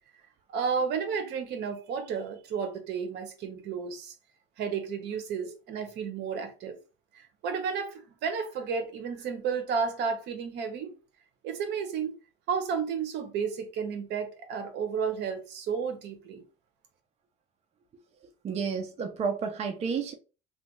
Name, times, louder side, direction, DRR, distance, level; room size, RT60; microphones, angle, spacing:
voice 1, 0.5-4.1 4.6-6.8 7.1-10.9 11.4-12.2 12.5-16.4, right 6 dB, 70° right, 0.9 m, -32 dB
voice 2, 18.4-20.1, right 5 dB, 35° right, 0.5 m, -31 dB
3.2 x 2.3 x 3.1 m
cardioid pair, 135°, 18 cm